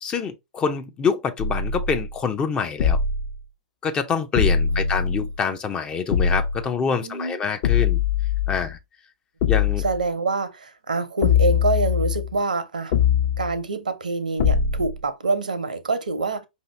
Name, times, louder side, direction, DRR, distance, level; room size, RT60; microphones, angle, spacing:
voice 1, 0.0-3.0 3.8-8.0 8.5-8.8 9.5-9.8, left 6 dB, 20° left, 0.6 m, -26 dB
sound 1, 1.4-2.2 2.8-3.4 4.3-5.4 6.1-6.7 7.6-8.7 9.4-10.0 11.2-12.3 12.9-13.5 14.4-15.0, left 7 dB, 45° left, 0.9 m, -22 dB
voice 2, 4.7-5.3 7.0-7.4 9.8-13.1 13.4-16.5, right 3 dB, 75° right, 0.9 m, -26 dB
5.3 x 2.8 x 3.2 m
figure-of-eight pair, 105°, 4 cm